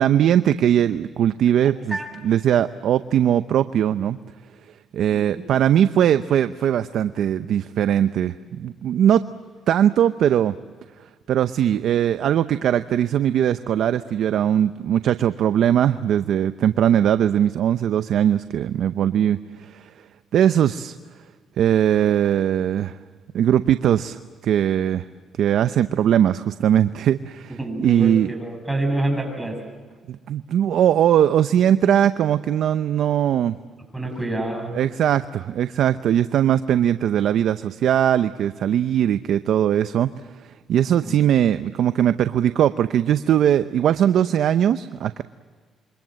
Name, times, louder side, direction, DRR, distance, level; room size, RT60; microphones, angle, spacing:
voice 1, 0.0-2.0 2.2-4.2 4.9-9.2 9.7-10.5 11.3-19.9 20.3-20.9 21.6-23.0 23.3-25.0 25.4-28.3 30.1-33.6 34.7-40.1 40.7-45.2, right 10 dB, 75° right, 11 dB, 0.7 m, -20 dB
voice 2, 5.1-5.4 27.6-29.6 33.9-34.7 41.0-41.2, right 2 dB, 10° right, 3 dB, 7.6 m, -27 dB
28.0 x 24.0 x 7.7 m, 1.5 s
cardioid pair, 90°, 0 cm